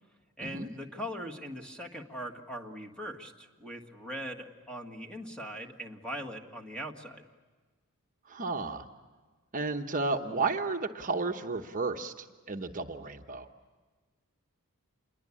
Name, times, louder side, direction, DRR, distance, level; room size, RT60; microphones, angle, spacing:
voice 1, 0.4-7.3, equal, 5° left, 3 dB, 1.8 m, -41 dB
voice 2, 8.3-8.9 9.5-13.5, right 3 dB, 35° right, 4 dB, 1.0 m, -33 dB
28.0 x 22.0 x 8.6 m, 1.4 s
head